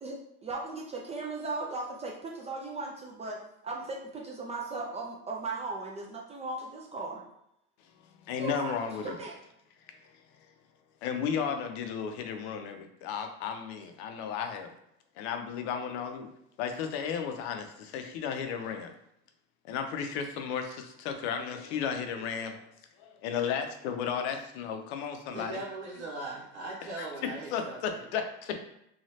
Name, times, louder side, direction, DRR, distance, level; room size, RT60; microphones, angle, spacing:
voice 1, 0.0-7.3 8.4-9.4, right 3 dB, 20° right, -2 dB, 0.4 m, -37 dB
voice 2, 8.2-9.2 11.0-14.7 15.2-16.3 16.6-18.9 19.7-22.6 23.0-25.6 27.0-28.6, left 7 dB, 75° left, 6 dB, 0.6 m, -34 dB
voice 3, 25.3-28.0, right 2 dB, 85° right, -6 dB, 0.9 m, -39 dB
3.1 x 2.3 x 2.8 m, 0.78 s
supercardioid pair, 115°, 34 cm